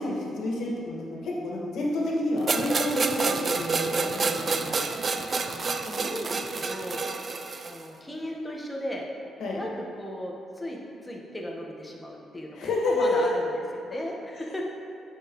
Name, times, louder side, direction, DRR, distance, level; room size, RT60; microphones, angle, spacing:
voice 1, 0.0-4.9 9.4-9.6 12.6-13.3 14.4-14.5, left 2 dB, 75° left, -3 dB, 1.9 m, -29 dB
sound 1, 2.5-7.8, right 4 dB, 40° right, 0.5 m, -28 dB
voice 2, 5.1-7.1 7.6-9.1 9.5-13.4 13.7-14.7, equal, 10° left, -1 dB, 1.4 m, -36 dB
9.3 x 7.1 x 3.2 m, 2.7 s
cardioid pair, 90°, 0 cm